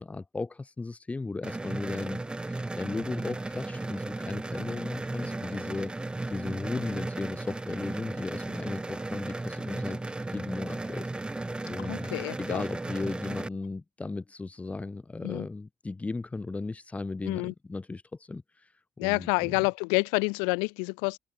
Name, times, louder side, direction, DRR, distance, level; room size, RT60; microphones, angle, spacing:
voice 1, 0.0-5.9 6.3-10.0 10.3-11.1 11.7-18.7 19.0-19.6, left 3 dB, 15° left, 2.4 m, -36 dB
sound 1, 1.4-13.5, right 2 dB, 10° right, 1.7 m, -35 dB
voice 2, 11.8-12.6 15.2-15.5 17.2-17.5 19.0-21.2, left 39 dB, 60° left, 0.3 m, -28 dB
figure-of-eight pair, 55°, 8 cm